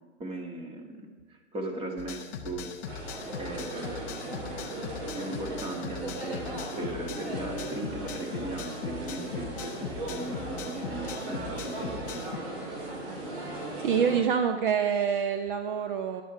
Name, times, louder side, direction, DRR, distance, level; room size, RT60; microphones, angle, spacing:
voice 1, 0.2-2.7 3.4-4.6 5.1-12.5, right 2 dB, 15° right, 3 dB, 1.7 m, -38 dB
sound 1, 2.0-12.4, left 6 dB, 10° left, 0.4 m, -40 dB
sound 2, 2.9-14.2, right 2 dB, 60° right, 4.7 m, -37 dB
voice 2, 13.8-16.2, right 7 dB, 45° right, 7 dB, 0.8 m, -26 dB
13.5 x 11.0 x 4.7 m, 1.4 s
hypercardioid pair, 130°, 36 cm